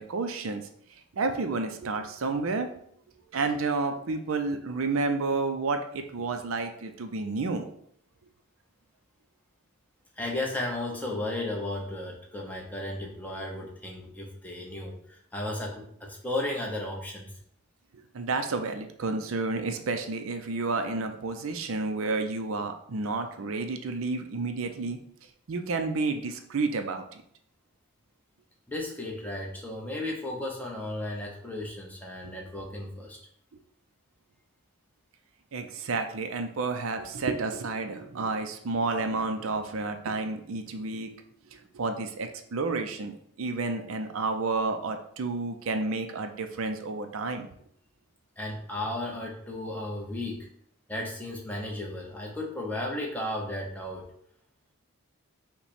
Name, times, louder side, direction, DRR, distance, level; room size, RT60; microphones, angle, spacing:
voice 1, 0.0-2.7 3.3-7.7 17.9-25.0 25.5-27.2 32.2-32.3 35.5-41.1 41.5-47.5, right 3 dB, 70° right, 6 dB, 0.5 m, -30 dB
voice 2, 10.2-17.3 28.7-33.2 48.4-50.5 50.9-54.1, left 1 dB, 5° left, -1 dB, 0.8 m, -34 dB
5.7 x 2.2 x 4.2 m, 0.67 s
head